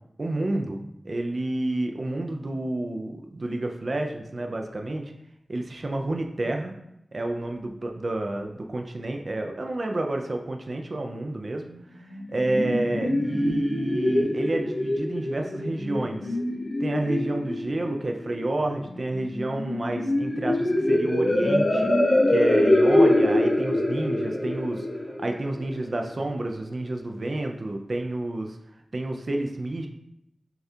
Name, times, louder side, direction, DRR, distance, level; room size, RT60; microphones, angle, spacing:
voice 1, 0.2-5.0 5.5-6.7 7.1-11.7 12.3-16.4 16.8-21.9 22.3-24.9 25.2-28.6 28.9-29.9, right 2 dB, 45° right, 3 dB, 0.4 m, -29 dB
sound 1, 12.1-26.1, left 1 dB, 50° left, 0.8 m, -24 dB
6.6 x 2.4 x 2.7 m, 0.81 s
wide cardioid pair, 90°, 0 cm